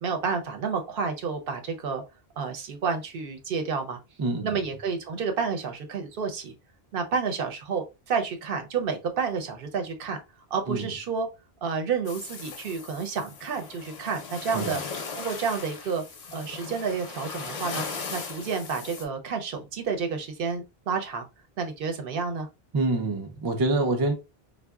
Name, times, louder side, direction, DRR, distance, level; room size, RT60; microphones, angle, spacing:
voice 1, 0.0-2.0 2.4-4.0 4.4-6.5 6.9-10.2 10.5-11.3 11.6-14.8 15.1-16.0 16.3-17.8 18.1-21.2 21.6-22.5, right 5 dB, 65° right, 0.7 m, -30 dB
voice 2, 4.2-4.6 10.7-10.9 14.5-14.8 22.7-24.1, right 2 dB, 40° right, 0.3 m, -26 dB
sound 1, 12.0-19.0, left 4 dB, 50° left, 0.5 m, -38 dB
3.6 x 2.0 x 2.2 m
omnidirectional pair, 1.1 m